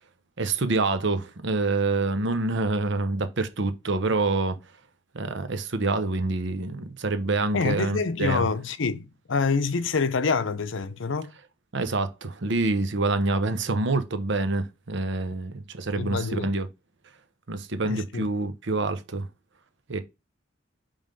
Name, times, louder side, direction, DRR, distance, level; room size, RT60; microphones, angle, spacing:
voice 1, 0.4-4.6 5.1-8.5 11.7-16.7 17.5-19.3 19.9-20.0, right 3 dB, 65° right, 1.0 m, -26 dB
voice 2, 7.5-11.3 16.0-16.5 17.8-18.3, left 4 dB, 65° left, 0.7 m, -26 dB
5.5 x 3.6 x 5.2 m
head